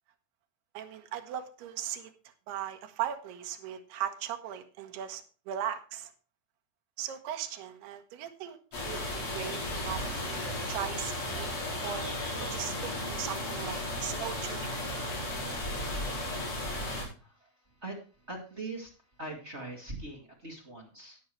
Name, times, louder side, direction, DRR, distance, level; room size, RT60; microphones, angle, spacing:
voice 1, 0.7-2.1 2.5-6.1 7.0-14.7, right 10 dB, 80° right, 6 dB, 3.3 m, -38 dB
sound 1, 8.7-17.0, left 1 dB, 35° left, 5.4 m, -35 dB
voice 2, 16.7-17.5 17.8-18.9 19.2-21.2, right 2 dB, 25° right, -1 dB, 1.6 m, -42 dB
14.0 x 9.7 x 3.2 m, 0.34 s
omnidirectional pair, 4.6 m